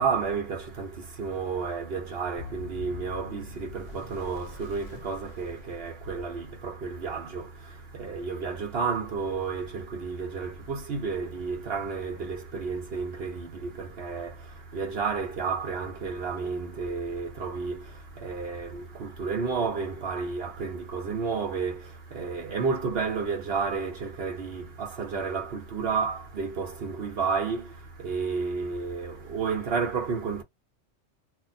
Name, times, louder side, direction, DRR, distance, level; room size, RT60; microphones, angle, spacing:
voice 1, 0.0-30.4, right 5 dB, 60° right, 1.0 m, -31 dB
sound 1, 2.4-6.5, left 5 dB, 50° left, 0.5 m, -44 dB
2.5 x 2.1 x 4.0 m
omnidirectional pair, 1.2 m